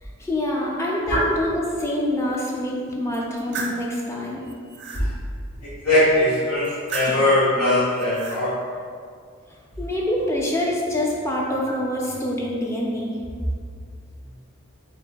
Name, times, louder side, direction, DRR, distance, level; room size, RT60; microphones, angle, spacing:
voice 1, 0.0-4.4 9.8-13.1, left 1 dB, 15° left, -2 dB, 0.4 m, -26 dB
sound 1, 3.1-3.8 4.4-5.1 6.6-7.3 7.9-8.4, right 3 dB, 50° right, 0.4 m, -33 dB
voice 2, 5.6-8.6, left 1 dB, 85° left, -10 dB, 1.0 m, -20 dB
4.3 x 3.7 x 2.2 m, 2.1 s
head